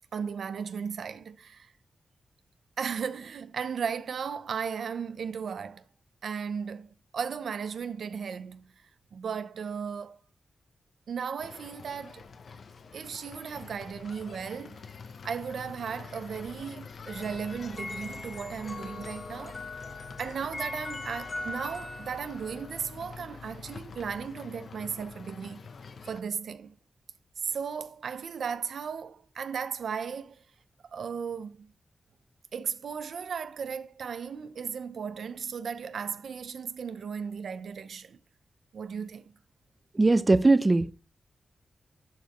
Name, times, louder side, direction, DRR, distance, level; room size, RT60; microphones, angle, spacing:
voice 1, 0.1-1.7 2.8-5.8 6.2-8.7 9.1-10.2 11.1-12.3 12.9-14.8 15.2-19.6 20.2-25.7 26.1-26.8 27.4-30.4 30.8-31.7 32.5-38.2 38.7-39.3, right 6 dB, 85° right, 0.6 m, -36 dB
sound 1, 11.4-26.2, left 5 dB, 65° left, 0.8 m, -46 dB
sound 2, 17.0-24.3, left 2 dB, 35° left, 2.0 m, -41 dB
voice 2, 39.9-40.9, right 2 dB, 25° right, 0.4 m, -20 dB
11.0 x 5.0 x 3.0 m
wide cardioid pair, 140°, 0 cm